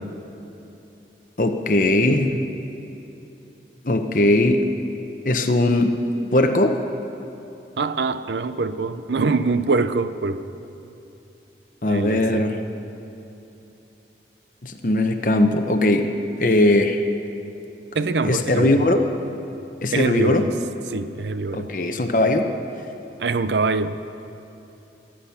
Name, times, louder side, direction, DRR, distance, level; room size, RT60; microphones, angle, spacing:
voice 1, 1.4-2.5 3.8-4.7 5.2-6.0 6.3-6.8 11.8-12.6 14.6-17.0 18.2-19.0 19.8-20.4 21.5-22.5, left 1 dB, 50° left, 0.8 m, -19 dB
voice 2, 7.8-10.5 11.9-12.5 17.9-18.8 19.9-20.5 20.9-21.7 23.2-24.0, right 3 dB, 80° right, 0.6 m, -24 dB
23.0 x 8.7 x 5.8 m
head